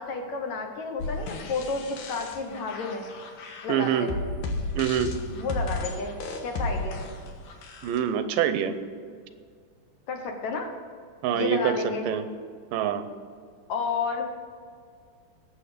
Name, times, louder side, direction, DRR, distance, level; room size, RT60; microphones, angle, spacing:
voice 1, 0.0-3.1 3.6-4.2 5.4-6.1 6.4-7.0 10.1-10.7 11.3-12.1 13.7-14.3, left 4 dB, 65° left, 3 dB, 2.3 m, -31 dB
sound 1, 1.0-8.0, left 2 dB, 85° left, 3.0 m, -34 dB
voice 2, 3.7-4.1 4.7-5.2 7.8-8.8 11.2-12.3 12.7-13.1, right 9 dB, 85° right, 11 dB, 2.4 m, -25 dB
19.5 x 7.6 x 5.1 m, 2.1 s
omnidirectional pair, 3.9 m